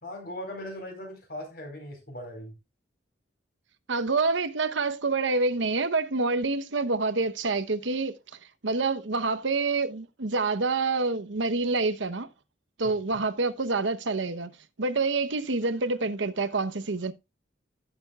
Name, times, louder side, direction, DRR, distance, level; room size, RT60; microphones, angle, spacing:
voice 1, 0.0-2.6 12.8-13.2, left 1 dB, 50° left, 4.3 m, -39 dB
voice 2, 3.9-8.1 8.6-12.3 12.8-14.5 14.8-17.1, right 3 dB, 85° right, 1.0 m, -27 dB
16.0 x 7.1 x 2.4 m
head